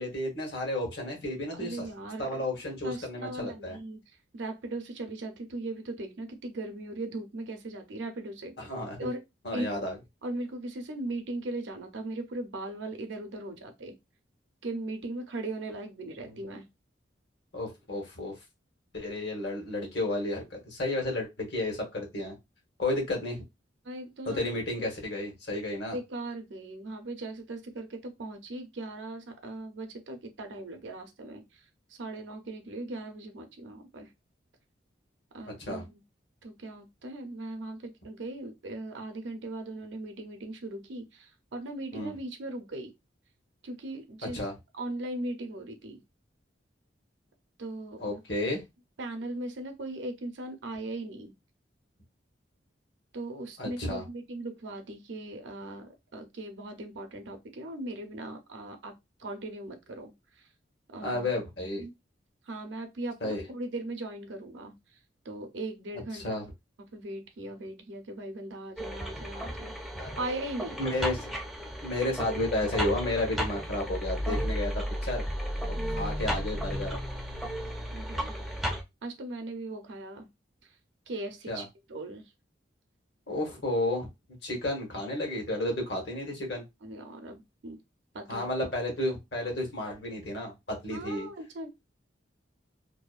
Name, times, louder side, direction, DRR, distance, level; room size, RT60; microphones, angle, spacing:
voice 1, 0.0-1.9 2.2-3.8 8.6-9.1 9.4-10.0 16.2-16.4 17.5-18.3 18.9-22.4 22.8-23.4 24.3-26.0 35.6-35.8 41.9-42.1 44.2-44.5 48.0-48.6 53.6-54.0 61.0-61.9 63.2-63.4 66.1-66.4 70.0-70.3 70.8-71.3 71.8-75.2 75.9-77.0 81.5-81.6 83.3-84.1 84.4-86.6 88.3-91.3, left 1 dB, 60° left, 1.0 m, -32 dB
voice 2, 1.5-2.4 2.8-4.0 4.3-8.5 9.0-9.2 9.5-9.7 10.2-14.0 14.6-16.7 23.8-24.9 25.9-31.6 31.9-34.1 35.3-36.0 36.4-42.9 43.6-44.4 44.7-46.0 47.6-48.2 49.0-51.3 53.1-58.9 59.2-60.1 60.4-60.5 60.9-61.2 61.8-61.9 62.5-64.7 65.2-66.4 66.9-70.8 75.8-76.0 77.9-78.4 79.0-80.3 81.1-82.3 86.8-87.8 88.1-88.6 90.9-91.8, right 2 dB, 75° right, 0.6 m, -39 dB
sound 1, 68.8-78.8, equal, ahead, 0.4 m, -34 dB
2.7 x 2.2 x 2.3 m
head